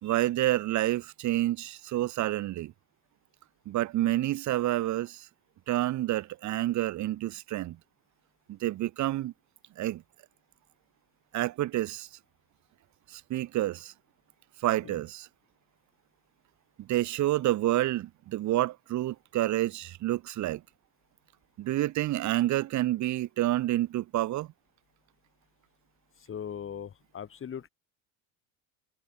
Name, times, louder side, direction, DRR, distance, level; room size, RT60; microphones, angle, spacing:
voice 1, 0.0-2.7 3.7-5.3 5.7-7.8 8.5-9.3 9.8-10.0 11.3-12.1 13.1-13.9 14.6-15.3 16.8-20.6 21.6-24.5, right 15 dB, 45° right, 2.0 m, -28 dB
voice 2, 26.2-27.7, left 8 dB, 30° left, 6.3 m, -39 dB
supercardioid pair, 110°, 39 cm